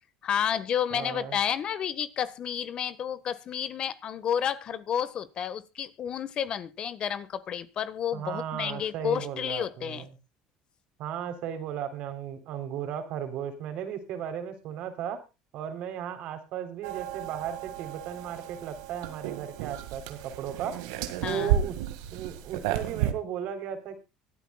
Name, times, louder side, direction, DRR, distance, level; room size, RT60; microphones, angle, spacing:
voice 1, 0.2-10.1 21.2-21.5, left 9 dB, 50° left, 1.5 m, -31 dB
voice 2, 0.9-1.4 8.1-10.1 11.0-15.2 15.5-20.8 21.2-21.8 22.1-24.0, right 9 dB, 65° right, 3.7 m, -35 dB
sound 1, 16.8-23.1, right 10 dB, 85° right, 1.9 m, -32 dB
24.5 x 8.6 x 2.3 m
supercardioid pair, 90°, 2 cm